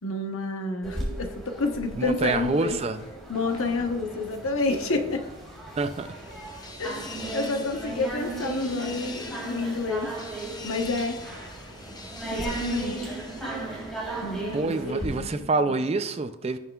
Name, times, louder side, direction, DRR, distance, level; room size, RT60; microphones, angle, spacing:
voice 1, 0.0-2.8 3.3-5.2 6.8-7.0 7.3-10.1 10.6-11.2 12.3-13.1 14.2-15.7, left 3 dB, 70° left, 5 dB, 0.9 m, -29 dB
sound 1, 0.8-15.1, right 2 dB, ahead, 2.3 m, -36 dB
voice 2, 2.0-3.0 5.8-6.1 14.5-16.6, right 3 dB, 30° right, 10 dB, 0.4 m, -27 dB
sound 2, 5.4-14.5, left 3 dB, 20° left, 0.6 m, -44 dB
16.5 x 5.6 x 2.3 m, 1.0 s
head